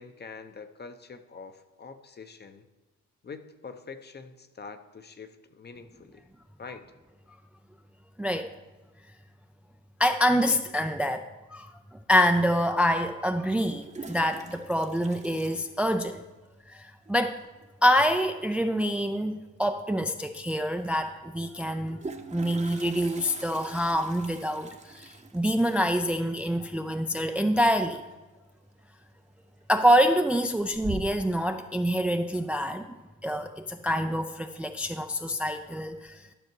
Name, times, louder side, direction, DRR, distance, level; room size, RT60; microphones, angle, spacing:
voice 1, 0.0-2.6 3.2-6.3 6.6-6.8, left 5 dB, 35° left, 9 dB, 0.8 m, -45 dB
voice 2, 10.0-11.3 11.5-11.7 12.1-16.2 16.7-17.4 17.8-22.0 22.3-28.0 29.7-32.9 33.2-36.3, equal, 5° right, 7 dB, 0.4 m, -26 dB
Toilet flush, 13.6-16.4 16.7-16.8 17.1-17.2 17.4-17.8 19.5-19.6 20.0-20.1 21.6-28.3 28.6-29.1 29.5-30.0 30.4-31.4, right 3 dB, 25° right, 0.9 m, -43 dB
12.5 x 6.5 x 4.6 m, 1.2 s
cardioid pair, 90°, 30 cm